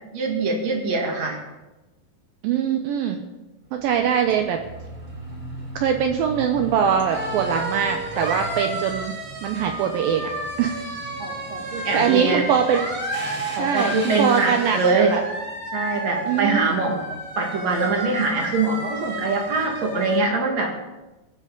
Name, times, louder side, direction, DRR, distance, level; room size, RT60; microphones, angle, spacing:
voice 1, 0.1-1.4 11.2-12.5 13.5-15.2 15.7-20.7, right 3 dB, 50° right, 1 dB, 2.6 m, -23 dB
voice 2, 2.4-3.2 3.7-4.6 5.8-9.1 9.4-10.3 10.6-10.8 11.9-12.9 13.6-15.2 16.3-17.0, right 8 dB, 80° right, 4 dB, 2.1 m, -22 dB
sound 1, 3.7-20.2, right 1 dB, 30° right, 3.6 m, -32 dB
22.0 x 10.0 x 3.9 m, 1.1 s
omnidirectional pair, 5.1 m